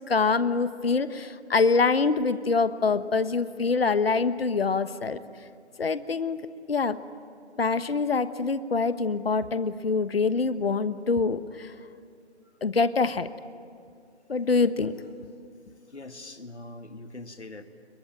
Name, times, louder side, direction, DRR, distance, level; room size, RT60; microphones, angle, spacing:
voice 1, 0.1-5.2 5.8-6.4 6.7-7.0 7.6-11.7 12.6-13.3 14.3-14.9, left 4 dB, 60° left, 13 dB, 1.2 m, -25 dB
voice 2, 15.9-17.6, left 2 dB, 75° left, 8 dB, 2.0 m, -43 dB
28.0 x 23.0 x 9.3 m, 2.4 s
figure-of-eight pair, 150°, 34 cm